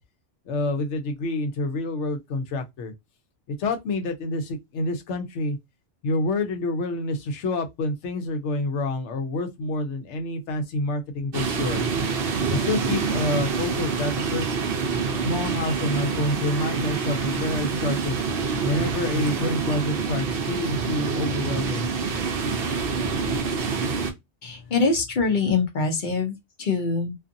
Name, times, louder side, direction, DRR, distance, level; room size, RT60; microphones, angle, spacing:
voice 1, 0.5-2.9 3.5-5.6 6.0-11.8 12.5-14.5 15.2-18.2 18.6-21.9, left 2 dB, 75° left, 0.9 m, -28 dB
sound 1, 11.3-24.1, right 5 dB, 60° right, 0.7 m, -26 dB
voice 2, 24.4-27.2, left 4 dB, 50° left, 0.7 m, -24 dB
2.5 x 2.5 x 2.5 m
omnidirectional pair, 1.2 m